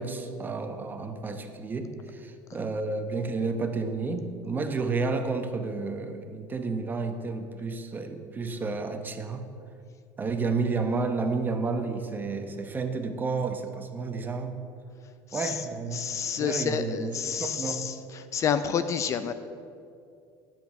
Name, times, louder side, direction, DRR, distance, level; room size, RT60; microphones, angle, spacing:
voice 1, 0.0-9.5 10.2-14.6 15.3-17.9, right 4 dB, 25° right, 6 dB, 0.9 m, -31 dB
voice 2, 15.9-17.9 18.3-19.3, left 7 dB, 40° left, 11 dB, 0.5 m, -29 dB
9.0 x 7.5 x 5.9 m, 2.4 s
supercardioid pair, 120°, 8 cm